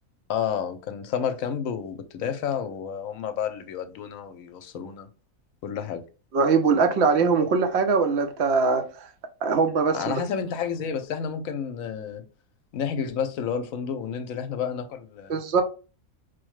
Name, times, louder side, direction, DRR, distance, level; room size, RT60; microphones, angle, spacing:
voice 1, 0.3-5.1 5.6-6.0 9.9-12.2 12.7-15.3, left 7 dB, 75° left, 1.0 m, -30 dB
voice 2, 6.3-8.8 9.4-10.2 15.3-15.6, right 5 dB, 60° right, 0.8 m, -21 dB
4.7 x 2.1 x 3.1 m
omnidirectional pair, 1.5 m